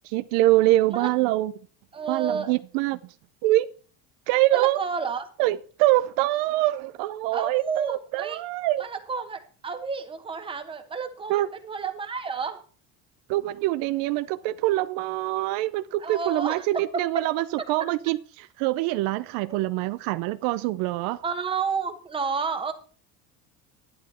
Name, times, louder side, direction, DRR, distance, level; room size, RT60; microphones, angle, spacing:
voice 1, 0.1-1.5 2.1-3.0 3.4-3.7 4.3-4.8 5.4-8.9 11.3-11.5 13.3-21.2, right 17 dB, 70° right, 0.6 m, -24 dB
voice 2, 1.9-2.5 4.5-5.2 7.3-8.4 8.8-12.6 16.0-16.7 19.5-19.6 21.2-22.7, right 5 dB, 15° right, 1.2 m, -31 dB
11.0 x 11.0 x 4.3 m
cardioid pair, 165°, 35 cm